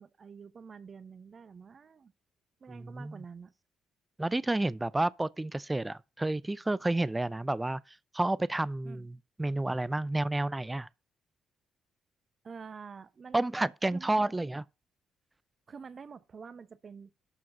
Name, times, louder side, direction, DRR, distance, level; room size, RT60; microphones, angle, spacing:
voice 1, 0.0-2.1 2.6-3.5 8.8-9.1 12.4-13.4 13.9-14.5 15.7-17.1, right 5 dB, 45° right, 1.1 m, -48 dB
voice 2, 2.7-3.1 4.2-10.9 13.3-14.6, right 2 dB, 15° right, 0.5 m, -30 dB
12.0 x 4.7 x 6.2 m
hypercardioid pair, 50°, 0 cm